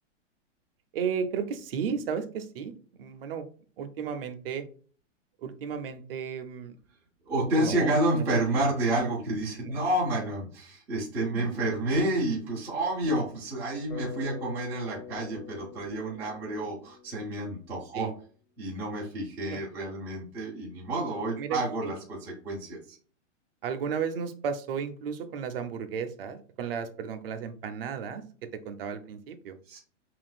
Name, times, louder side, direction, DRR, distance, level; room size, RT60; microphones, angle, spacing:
voice 1, 0.9-2.7 3.0-3.5 3.8-4.6 5.4-6.8 7.6-8.2 8.5-8.7 9.6-9.8 11.2-11.7 14.9-15.0 17.9-18.1 19.5-19.6 21.4-21.9 23.6-29.6, right 6 dB, 50° right, 9 dB, 0.6 m, -34 dB
voice 2, 7.3-18.1 18.6-22.2 22.4-23.0 29.7-29.8, right 1 dB, 5° right, -5 dB, 0.4 m, -29 dB
Bass guitar, 13.9-18.0, left 8 dB, 75° left, 1.6 m, -44 dB
5.7 x 2.5 x 2.3 m, 0.42 s
hypercardioid pair, 155°, 37 cm